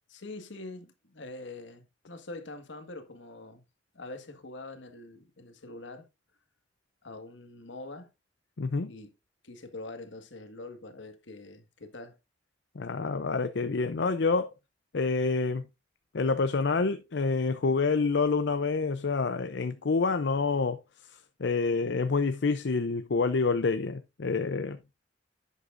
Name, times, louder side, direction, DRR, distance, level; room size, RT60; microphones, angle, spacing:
voice 1, 0.1-3.6 3.9-6.1 7.0-8.1 8.8-9.1 9.4-12.2, left 2 dB, 80° left, 1.7 m, -44 dB
voice 2, 8.6-8.9 12.8-14.5 14.9-15.7 16.1-20.8 21.4-24.8, left 4 dB, 65° left, 0.6 m, -27 dB
11.0 x 8.1 x 2.5 m
head